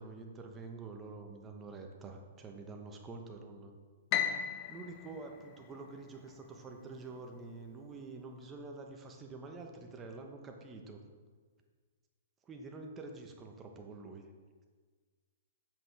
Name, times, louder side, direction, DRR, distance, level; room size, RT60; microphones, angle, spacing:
voice 1, 0.0-3.8 4.7-11.0 12.4-14.2, right 3 dB, 20° right, 3 dB, 1.0 m, -47 dB
Piano, 4.1-6.4, left 9 dB, 35° left, 0.7 m, -36 dB
7.8 x 7.4 x 3.4 m, 1.5 s
hypercardioid pair, 125°, 0 cm